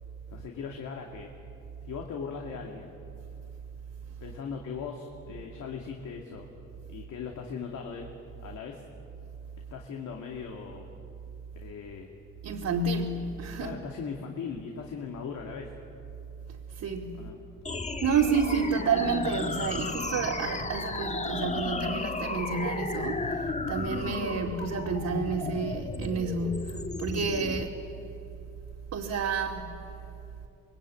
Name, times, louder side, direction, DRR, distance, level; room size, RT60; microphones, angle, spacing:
voice 1, 0.3-1.3 1.8-3.0 4.2-6.5 6.9-8.1 8.4-8.8 9.7-10.9 11.6-12.1 13.6-15.7 17.1-17.4, left 6 dB, 75° left, 2.6 m, -39 dB
voice 2, 12.4-13.7 16.8-17.3 18.0-27.8 28.9-29.8, right 5 dB, 65° right, 2.4 m, -30 dB
sound 1, 17.6-27.6, left 3 dB, 25° left, 1.4 m, -34 dB
26.0 x 21.5 x 9.2 m
cardioid pair, 90°, 30 cm